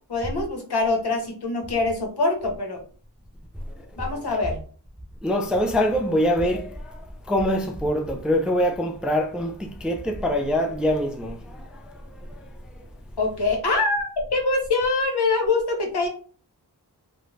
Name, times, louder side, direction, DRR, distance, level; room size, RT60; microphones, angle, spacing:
voice 1, 0.1-2.8 4.0-4.6 13.2-16.1, left 3 dB, 70° left, 0.9 m, -24 dB
voice 2, 5.2-7.0 7.3-12.0 12.3-12.4, equal, ahead, 0.3 m, -24 dB
2.5 x 2.1 x 3.1 m
wide cardioid pair, 80°, 41 cm